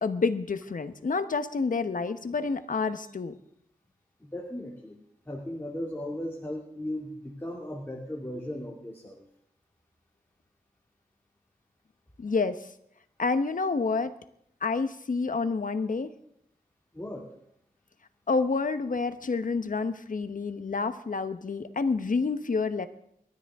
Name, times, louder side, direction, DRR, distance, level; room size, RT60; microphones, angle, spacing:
voice 1, 0.0-3.3 12.2-12.6 13.2-14.1 14.6-16.1 18.3-22.9, left 4 dB, 65° left, 10 dB, 1.1 m, -28 dB
voice 2, 4.2-5.0 5.3-9.2 16.9-17.3, left 1 dB, 15° left, -2 dB, 2.6 m, -37 dB
28.0 x 13.0 x 3.7 m, 0.76 s
wide cardioid pair, 90°, 15 cm